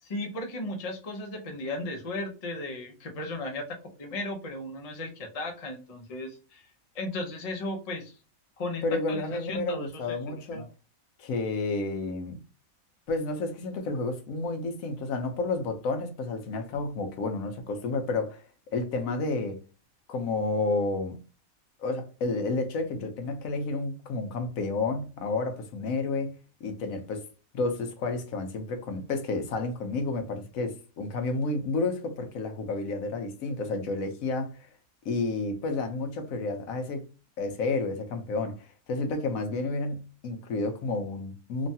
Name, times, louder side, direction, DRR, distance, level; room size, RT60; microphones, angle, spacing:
voice 1, 0.0-6.6 6.9-8.2 8.6-10.7, left 2 dB, 40° left, 0.5 m, -36 dB
voice 2, 8.8-10.6 11.2-12.4 13.1-18.4 18.7-19.6 20.1-21.2 21.8-26.3 26.6-27.2 27.5-34.7 35.1-37.1 37.4-41.7, left 3 dB, 75° left, 1.1 m, -30 dB
3.1 x 2.2 x 2.7 m
omnidirectional pair, 1.5 m